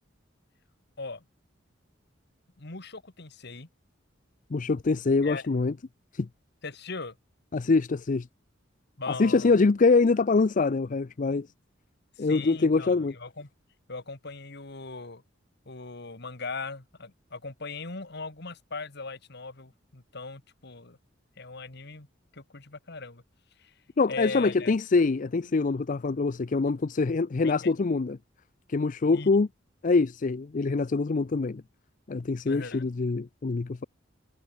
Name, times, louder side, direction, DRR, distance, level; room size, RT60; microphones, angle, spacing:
voice 1, 2.6-3.7 5.2-5.5 6.6-7.2 9.0-9.6 12.2-13.5 13.9-15.2 15.7-21.0 21.4-22.1 22.3-23.2 23.6-23.7 24.1-24.7 27.4-27.7 29.1-29.3 32.4-32.9, left 3 dB, 60° left, 2.2 m, -39 dB
voice 2, 4.5-5.7 6.1-6.3 7.5-8.3 9.1-11.5 12.2-13.1 24.0-28.2 28.7-29.5 29.8-31.6 32.1-33.9, left 3 dB, 40° left, 0.5 m, -24 dB
head